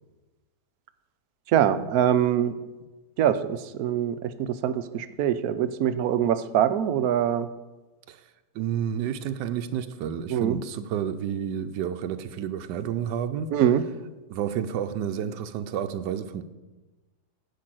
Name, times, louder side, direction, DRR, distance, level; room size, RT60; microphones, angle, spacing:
voice 1, 1.5-2.5 3.2-7.5 10.3-10.6 13.5-13.8, right 10 dB, 70° right, 12 dB, 1.0 m, -24 dB
voice 2, 8.5-13.5 14.3-16.4, right 9 dB, 90° right, 9 dB, 1.3 m, -30 dB
10.5 x 5.2 x 7.6 m, 1.2 s
omnidirectional pair, 1.8 m